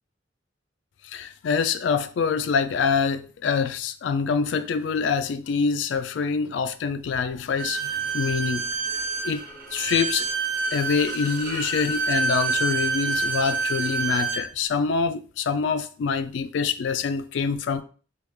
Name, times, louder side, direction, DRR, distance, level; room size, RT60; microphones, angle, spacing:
voice 1, 1.1-9.0 9.2-9.4 9.7-10.3 10.7-17.8, left 5 dB, 75° left, 0.3 m, -25 dB
Bowed string instrument, 7.6-14.4, right 4 dB, 50° right, 0.8 m, -27 dB
3.2 x 3.1 x 2.3 m
head